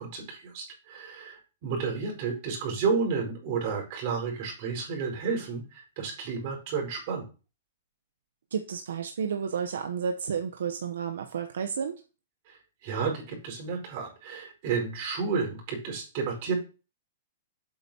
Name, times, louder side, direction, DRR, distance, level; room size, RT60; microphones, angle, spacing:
voice 1, 0.0-7.3 12.5-16.5, right 5 dB, 50° right, 0 dB, 4.8 m, -31 dB
voice 2, 8.5-12.0, right 7 dB, 80° right, 5 dB, 0.9 m, -31 dB
8.8 x 8.0 x 2.9 m, 0.34 s
hypercardioid pair, 140°, 0 cm